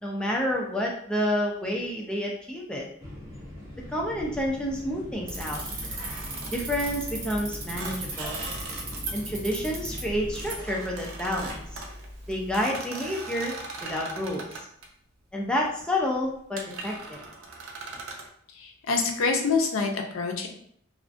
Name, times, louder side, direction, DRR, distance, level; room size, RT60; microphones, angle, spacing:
voice 1, 0.0-2.9 3.9-5.6 6.5-8.4 9.1-11.8 12.3-13.5 13.8-14.5 15.3-17.2, equal, 5° left, -2 dB, 0.3 m, -29 dB
sound 1, 3.0-10.5, left 1 dB, 15° right, 0.8 m, -42 dB
Bicycle, 5.3-12.6, right 1 dB, 65° right, 0.9 m, -38 dB
sound 2, 5.4-6.9 7.5-9.2 9.5-9.8 10.3-14.9 15.6-15.8 16.3-16.4 16.6-18.3, right 3 dB, 85° right, 0.5 m, -39 dB
voice 2, 18.5-20.5, left 4 dB, 85° left, 3 dB, 0.4 m, -26 dB
2.4 x 2.1 x 2.4 m, 0.66 s
head